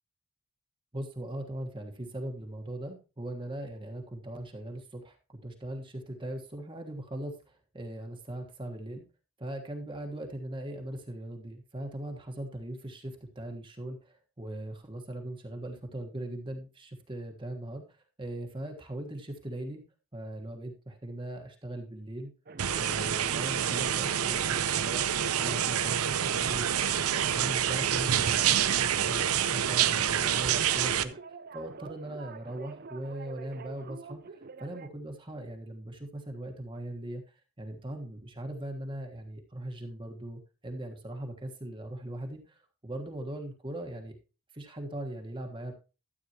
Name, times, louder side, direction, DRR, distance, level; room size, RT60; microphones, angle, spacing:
voice 1, 0.9-5.2 5.4-9.0 9.4-19.8 20.1-22.3 22.7-31.1 31.5-34.2 34.6-44.2 44.5-45.7, right 1 dB, 20° right, 3 dB, 1.3 m, -40 dB
Refuge protest, 22.5-34.9, right 4 dB, 40° right, 0.5 m, -46 dB
sound 1, 22.6-31.0, right 9 dB, 80° right, 0.7 m, -27 dB
12.5 x 8.5 x 2.9 m, 0.32 s
head